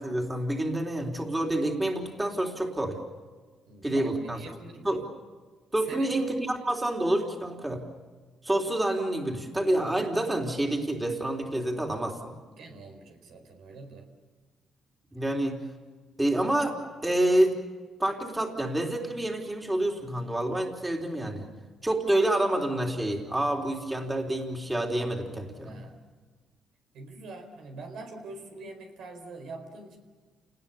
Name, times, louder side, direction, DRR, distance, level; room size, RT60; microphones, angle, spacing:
voice 1, 0.0-3.0 3.8-4.4 4.8-5.0 5.7-7.8 8.4-12.3 15.1-15.6 16.2-16.8 17.0-17.6 18.0-21.5 21.8-25.7, right 1 dB, 15° right, 1 dB, 3.5 m, -28 dB
voice 2, 3.7-5.0 5.8-6.2 12.5-14.1 25.6-26.0 26.9-30.0, right 3 dB, 80° right, 4 dB, 4.6 m, -44 dB
29.5 x 19.5 x 7.0 m, 1.4 s
cardioid pair, 90°, 0 cm